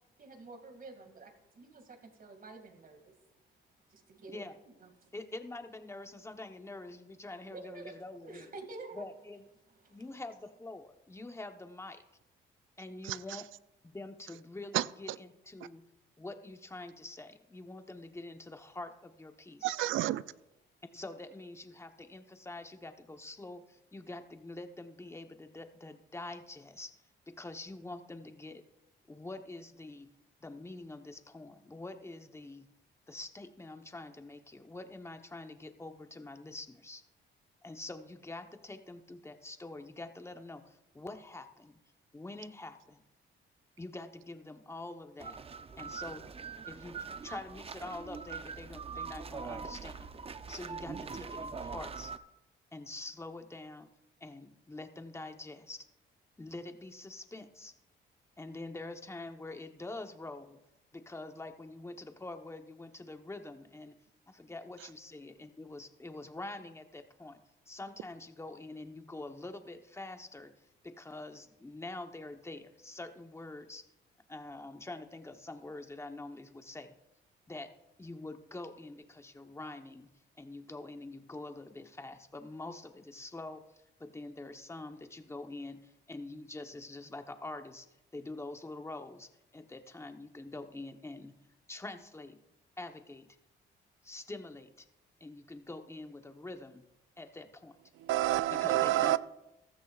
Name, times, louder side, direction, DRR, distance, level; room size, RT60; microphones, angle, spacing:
voice 1, 0.2-3.0 3.9-4.4 4.8-4.9 7.5-9.0 9.8-10.0, right 3 dB, 45° right, 5 dB, 2.3 m, -49 dB
voice 2, 5.1-8.5 8.9-9.5 9.9-12.0 12.8-13.5 13.8-15.9 16.2-19.8 20.9-26.9 27.3-28.6 29.1-30.1 30.4-32.7 33.1-37.0 37.6-41.8 42.1-43.0 43.8-45.4 45.8-46.3 46.7-50.1 50.5-52.1 52.7-53.9 54.2-55.8 56.4-57.7 58.4-60.6 60.9-64.0 64.3-67.4 67.7-70.5 70.8-73.8 74.3-76.9 77.5-77.7 78.0-80.1 80.4-83.6 84.0-87.9 88.1-91.3 91.7-92.4 92.8-93.3 94.0-94.8 95.2-96.8 97.2-97.8 98.5-99.2, left 2 dB, 15° left, 7 dB, 1.0 m, -45 dB
voice 3, 19.6-20.2 98.1-99.2, right 14 dB, 80° right, 16 dB, 0.5 m, -28 dB
sound 1, 45.2-52.2, right 5 dB, 30° right, 0.6 m, -43 dB
15.0 x 13.0 x 2.4 m, 0.91 s
cardioid pair, 90°, 20 cm